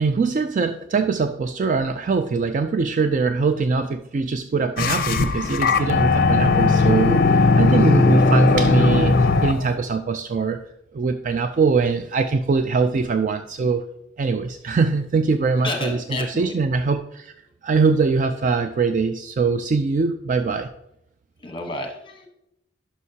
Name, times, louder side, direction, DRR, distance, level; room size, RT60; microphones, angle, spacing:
voice 1, 0.0-10.6 10.9-13.8 14.2-16.0 16.4-17.3 17.6-20.7, right 4 dB, 40° right, 8 dB, 0.3 m, -22 dB
sound 1, 4.8-9.7, left 3 dB, 50° left, 0.5 m, -18 dB
voice 2, 15.6-16.6 21.4-22.3, left 1 dB, 25° left, 4 dB, 1.1 m, -31 dB
11.0 x 5.8 x 2.8 m, 0.82 s
head